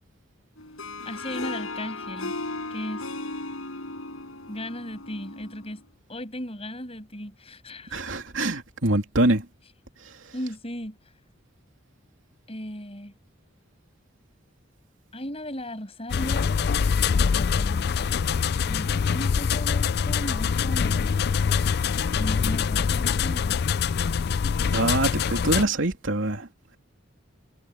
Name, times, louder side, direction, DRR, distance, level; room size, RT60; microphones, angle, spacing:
Harp, 0.6-5.8, left 2 dB, 90° left, 6.2 m, -36 dB
voice 1, 1.0-2.3 2.7-3.1 4.5-5.8 6.1-8.0 10.3-11.0 12.5-13.1 15.1-16.6 17.1-17.9 18.6-21.2 22.2-23.6, equal, 30° left, 7.0 m, -36 dB
voice 2, 7.9-9.4 24.7-26.5, right 2 dB, 70° right, 3.0 m, -24 dB
sound 1, 16.1-25.7, left 6 dB, 50° left, 0.4 m, -24 dB
head